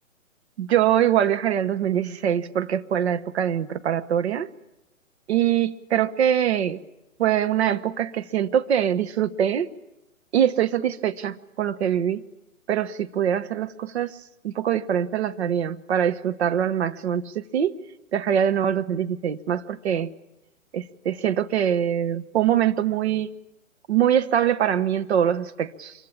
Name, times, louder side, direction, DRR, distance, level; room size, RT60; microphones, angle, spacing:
voice 1, 0.6-4.5 5.3-6.8 7.2-9.7 10.3-12.2 12.7-14.2 14.4-17.8 18.1-20.1 20.7-23.3 23.9-25.9, right 10 dB, 50° right, 1.4 m, -23 dB
26.5 x 23.5 x 8.8 m
figure-of-eight pair, 130°, 40 cm